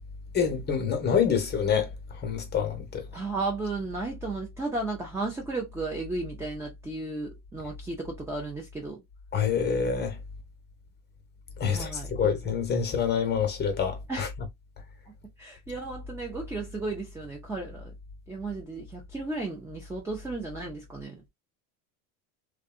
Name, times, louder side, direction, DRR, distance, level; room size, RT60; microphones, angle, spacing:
voice 1, 0.3-1.9 2.2-3.0 9.3-10.2 11.6-14.3, left 7 dB, 25° left, 0.8 m, -26 dB
voice 2, 3.1-9.0 11.7-12.1 14.1-14.3 15.4-17.9 18.3-21.3, right 3 dB, 5° right, 0.3 m, -34 dB
2.6 x 2.2 x 2.3 m
supercardioid pair, 120°, 43 cm